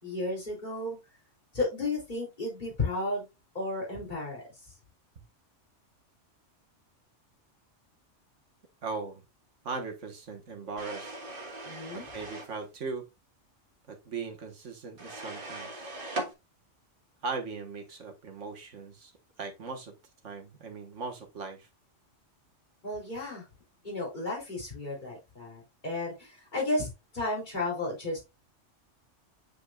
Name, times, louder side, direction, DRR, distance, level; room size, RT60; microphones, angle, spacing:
voice 1, 0.0-1.0 1.5-3.3 3.5-4.4 11.6-12.0 22.8-23.5 23.8-28.2, left 2 dB, 40° left, 3.5 m, -33 dB
voice 2, 8.8-9.2 9.6-11.1 11.9-13.1 13.9-15.9 17.2-19.1 19.4-19.9 20.2-21.7, right 4 dB, 80° right, 1.7 m, -38 dB
sound 1, 10.8-12.5 15.0-16.3, right 2 dB, 50° right, 1.5 m, -39 dB
8.4 x 5.2 x 2.4 m
omnidirectional pair, 1.2 m